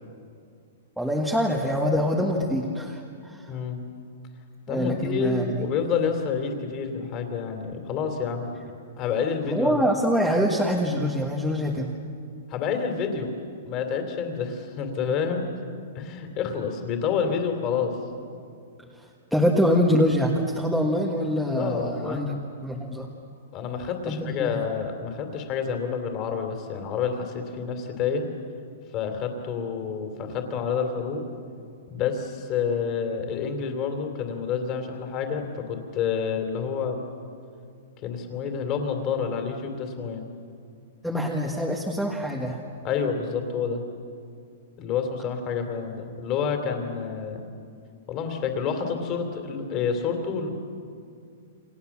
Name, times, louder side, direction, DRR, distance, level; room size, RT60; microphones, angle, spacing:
voice 1, 1.0-3.5 4.7-5.6 9.4-12.0 18.9-22.3 22.6-23.1 24.1-24.5 41.0-42.6, equal, ahead, -2 dB, 1.5 m, -25 dB
voice 2, 3.5-3.8 4.7-8.5 9.0-9.8 12.5-13.3 13.6-15.5 15.9-17.9 21.5-22.3 23.5-28.2 28.9-31.2 31.9-37.0 38.0-40.2 42.8-43.8 44.8-47.4 48.1-50.5, left 6 dB, 25° left, 5 dB, 3.0 m, -28 dB
29.5 x 26.5 x 7.3 m, 2.3 s
hypercardioid pair, 170°, 0 cm